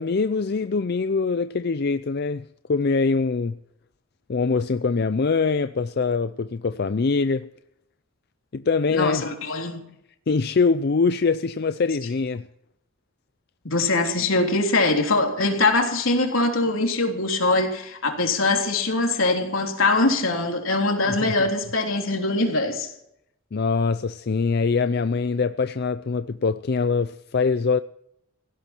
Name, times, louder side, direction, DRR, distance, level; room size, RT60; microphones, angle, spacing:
voice 1, 0.0-3.6 4.3-7.5 8.5-9.2 10.3-12.5 21.2-21.3 23.5-27.8, left 4 dB, 50° left, 0.5 m, -23 dB
voice 2, 8.9-9.8 13.6-22.9, left 2 dB, 80° left, 3.6 m, -22 dB
17.5 x 16.5 x 4.5 m
head